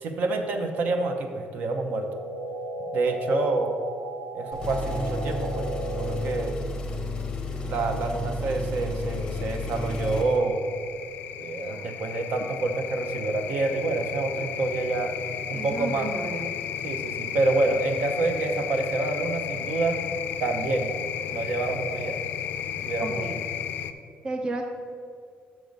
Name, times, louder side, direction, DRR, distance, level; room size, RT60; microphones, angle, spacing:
voice 1, 0.0-2.1 2.9-3.7 4.3-5.7 6.0-6.6 7.6-10.7 11.4-15.2 15.5-16.1 16.8-20.0 20.4-20.9 21.3-22.2 22.9-23.4, right 2 dB, 55° right, 5 dB, 0.8 m, -27 dB
sound 1, 1.7-6.7, right 1 dB, 75° right, 1.0 m, -35 dB
Engine, 4.5-10.4, left 1 dB, 20° left, 0.7 m, -32 dB
sound 2, 8.9-23.9, left 9 dB, 70° left, 0.4 m, -34 dB
voice 2, 15.5-16.5 23.0-23.4 24.2-24.6, right 2 dB, 25° right, 4 dB, 0.4 m, -32 dB
6.5 x 6.1 x 5.2 m, 2.3 s
cardioid pair, 175°, 4 cm